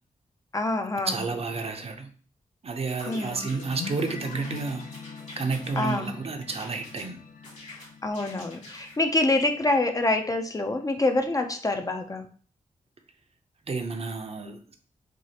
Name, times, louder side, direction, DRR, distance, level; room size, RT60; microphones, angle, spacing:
voice 1, 0.5-1.2 3.1-3.5 5.8-6.2 8.0-12.3, left 2 dB, 25° left, 5 dB, 0.4 m, -26 dB
voice 2, 1.1-2.1 2.6-4.8 5.4-7.2 13.7-14.6, right 4 dB, 45° right, 5 dB, 0.6 m, -31 dB
sound 1, 2.9-6.0 6.5-7.1 7.4-9.0, left 2 dB, 55° left, 1.9 m, -46 dB
sound 2, 3.1-10.2, left 6 dB, 85° left, 0.4 m, -43 dB
6.1 x 2.4 x 2.8 m, 0.44 s
wide cardioid pair, 145°, 14 cm